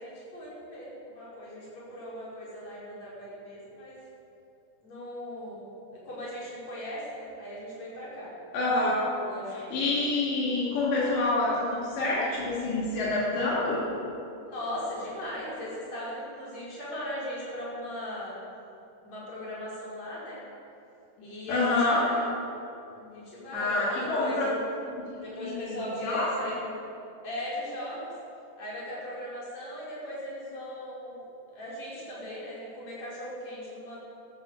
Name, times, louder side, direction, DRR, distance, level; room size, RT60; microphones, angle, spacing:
voice 1, 0.0-4.0 4.8-8.3 9.2-9.9 14.5-18.4 19.0-20.4 21.2-22.2 22.9-24.6 25.2-26.7 27.2-28.1 28.6-31.2 31.5-34.0, left 1 dB, 40° left, -7 dB, 6.2 m, -38 dB
voice 2, 8.5-9.1 9.5-13.8 21.5-22.0 23.5-24.5 24.8-26.3, left 2 dB, 80° left, -7 dB, 5.1 m, -27 dB
14.0 x 13.0 x 7.5 m, 2.7 s
omnidirectional pair, 5.0 m